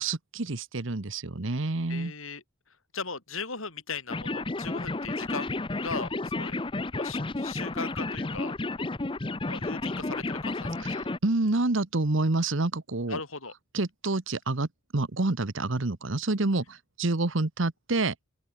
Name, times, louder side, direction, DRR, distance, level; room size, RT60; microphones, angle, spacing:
voice 1, 0.0-2.1 11.2-13.2 13.7-18.3, right 2 dB, 65° right, 1.2 m, -28 dB
voice 2, 1.9-2.4 2.9-6.6 7.0-8.5 9.4-11.1 13.1-13.5, left 4 dB, 80° left, 5.9 m, -38 dB
sound 1, 4.1-11.2, left 2 dB, 25° left, 0.7 m, -32 dB
open air
head